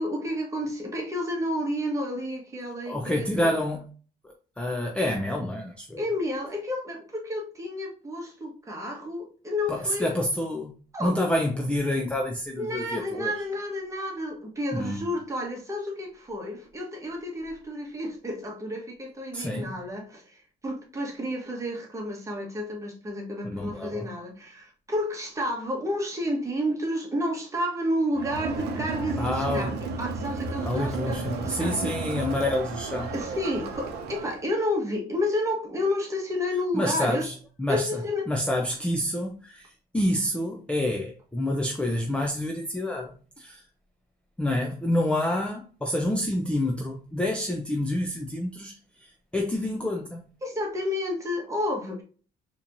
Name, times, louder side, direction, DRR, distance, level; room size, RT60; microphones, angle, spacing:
voice 1, 0.0-3.5 6.0-10.1 10.9-11.2 12.6-32.0 33.1-37.3 37.7-38.3 50.4-52.0, left 1 dB, 20° right, 1.2 m, -31 dB
voice 2, 2.9-3.9 4.2-6.1 9.7-10.7 11.0-13.3 14.7-15.1 19.3-19.8 23.4-24.1 29.2-29.7 30.6-33.1 36.7-38.0 38.3-43.6 44.4-50.2, left 1 dB, 5° left, 0.5 m, -28 dB
Crowd, 28.1-34.4, right 3 dB, 75° right, 0.7 m, -33 dB
4.2 x 3.0 x 2.6 m
cardioid pair, 110°, 17 cm